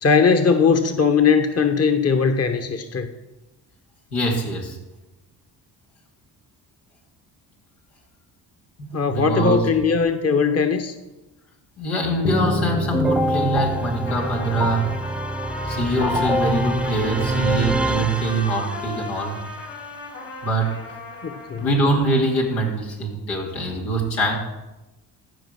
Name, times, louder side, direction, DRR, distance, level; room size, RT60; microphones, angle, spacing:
voice 1, 0.0-3.1 8.9-10.9 21.2-21.7, left 5 dB, 30° left, 8 dB, 1.1 m, -19 dB
voice 2, 4.1-4.8 8.8-9.7 11.8-15.0 15.6-19.4 20.4-20.8 21.6-24.4, right 1 dB, 90° left, -2 dB, 2.6 m, -23 dB
sound 1, 12.2-19.0, right 1 dB, ahead, 0.7 m, -25 dB
Trumpet, 14.1-21.9, left 3 dB, 70° left, 4.3 m, -36 dB
14.0 x 5.2 x 6.4 m, 1.0 s
supercardioid pair, 55°, 46 cm